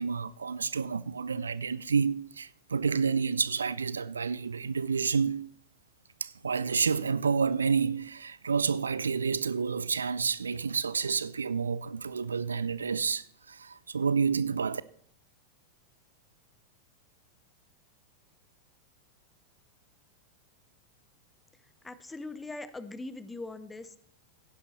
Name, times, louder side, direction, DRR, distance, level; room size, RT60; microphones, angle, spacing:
voice 1, 0.0-5.5 6.2-14.8, right 5 dB, 75° right, 0.4 m, -29 dB
voice 2, 21.8-24.0, left 2 dB, 10° left, 0.9 m, -41 dB
15.5 x 11.0 x 3.2 m
figure-of-eight pair, 90°, 0 cm